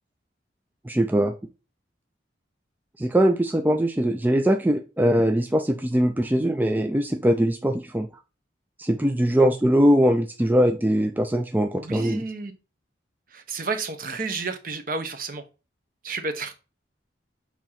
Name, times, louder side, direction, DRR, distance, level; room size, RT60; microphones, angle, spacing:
voice 1, 0.9-1.3 3.0-8.1 8.8-12.2, equal, 10° right, 5 dB, 0.4 m, -21 dB
voice 2, 11.8-12.5 13.3-15.4 16.0-16.5, right 3 dB, 45° right, 8 dB, 1.0 m, -31 dB
7.2 x 2.9 x 5.6 m, 0.32 s
head